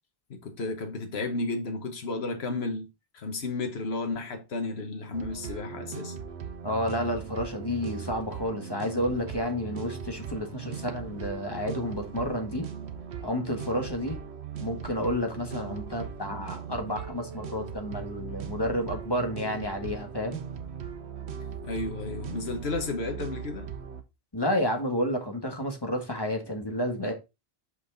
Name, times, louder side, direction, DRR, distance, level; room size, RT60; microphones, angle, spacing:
voice 1, 0.3-6.1 21.6-23.7, left 3 dB, 75° left, 1.4 m, -33 dB
sound 1, 5.1-24.0, right 7 dB, 90° right, 1.2 m, -39 dB
voice 2, 6.6-12.7 13.2-14.2 14.6-20.4 24.3-27.1, left 1 dB, 25° left, 1.7 m, -30 dB
6.3 x 5.7 x 3.9 m
omnidirectional pair, 1.1 m